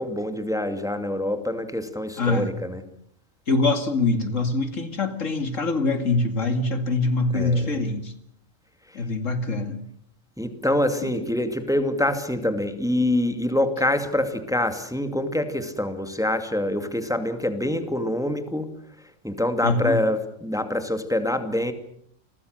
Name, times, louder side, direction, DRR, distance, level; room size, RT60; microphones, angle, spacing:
voice 1, 0.0-2.8 7.3-7.8 8.9-9.1 10.4-18.7 19.0-21.7, left 1 dB, ahead, 7 dB, 2.4 m, -25 dB
voice 2, 2.2-2.5 3.5-8.1 8.9-9.8 11.0-11.1 19.6-20.0, left 3 dB, 70° left, 8 dB, 2.7 m, -24 dB
29.5 x 22.5 x 6.6 m, 0.67 s
omnidirectional pair, 1.4 m